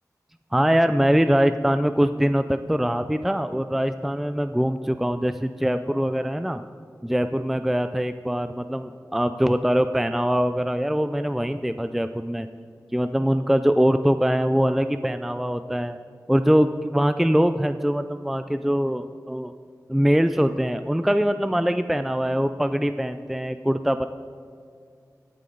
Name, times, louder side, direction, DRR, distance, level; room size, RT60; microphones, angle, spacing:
voice 1, 0.5-6.6 7.0-12.5 12.9-16.0 16.3-19.5 19.9-24.1, equal, 5° right, 10 dB, 0.3 m, -23 dB
14.0 x 9.0 x 3.9 m, 2.3 s
wide cardioid pair, 75°, 6 cm